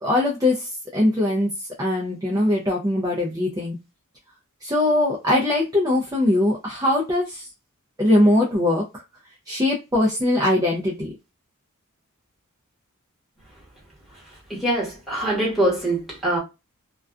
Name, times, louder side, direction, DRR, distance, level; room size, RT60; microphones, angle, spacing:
voice 1, 0.0-3.8 4.6-7.5 8.0-9.0 9.5-11.1, left 1 dB, 15° right, 0.5 m, -21 dB
voice 2, 14.5-16.4, right 1 dB, ahead, 1.2 m, -23 dB
2.4 x 2.2 x 2.3 m
head